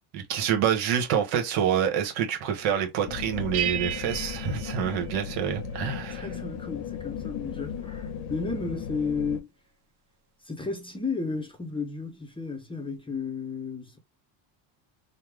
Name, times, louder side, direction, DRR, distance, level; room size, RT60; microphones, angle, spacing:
voice 1, 0.1-6.3, right 8 dB, 85° right, 1.2 m, -27 dB
sound 1, 3.1-9.4, left 7 dB, 65° left, 0.7 m, -36 dB
sound 2, 3.5-5.8, right 10 dB, 55° right, 0.7 m, -34 dB
voice 2, 5.9-9.5 10.4-14.0, left 4 dB, 10° left, 0.6 m, -33 dB
3.3 x 2.1 x 3.3 m
cardioid pair, 125°, 48 cm